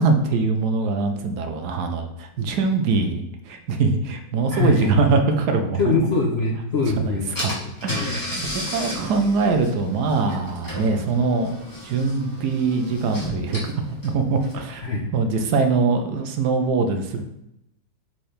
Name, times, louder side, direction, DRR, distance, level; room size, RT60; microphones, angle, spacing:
voice 1, 0.0-5.8 7.4-7.5 7.8-8.2 8.7-13.7 14.0-14.8 15.1-17.2, right 4 dB, 70° right, 6 dB, 1.2 m, -22 dB
voice 2, 4.5-4.9 5.8-7.4 7.6-8.2 14.8-15.0, left 3 dB, 55° left, -1 dB, 0.7 m, -23 dB
Car / Engine, 6.9-7.0 7.3-14.8, equal, 10° left, 1.7 m, -33 dB
4.4 x 4.4 x 5.0 m, 0.80 s
omnidirectional pair, 1.9 m